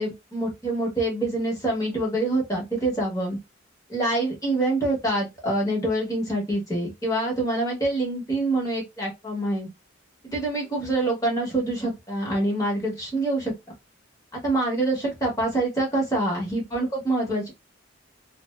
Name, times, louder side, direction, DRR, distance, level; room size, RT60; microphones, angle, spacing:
voice 1, 0.0-3.4 3.9-9.7 10.2-13.5 14.3-17.5, right 2 dB, 15° left, 1.0 m, -26 dB
2.6 x 2.0 x 2.3 m
head